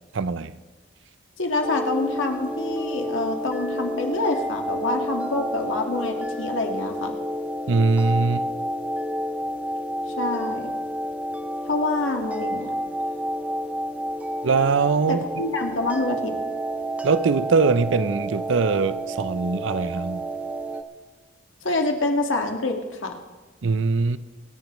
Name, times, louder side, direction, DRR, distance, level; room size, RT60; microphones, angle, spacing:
voice 1, 0.1-0.5 7.7-8.4 14.4-15.2 17.0-20.2 23.6-24.2, right 4 dB, 80° right, 0.5 m, -22 dB
voice 2, 1.4-7.1 10.2-10.7 11.7-12.7 15.1-16.3 21.6-22.8 23.0-23.2, left 2 dB, 85° left, 1.8 m, -26 dB
sound 1, 1.6-20.8, right 1 dB, 5° right, 0.5 m, -30 dB
25.5 x 10.5 x 3.1 m
head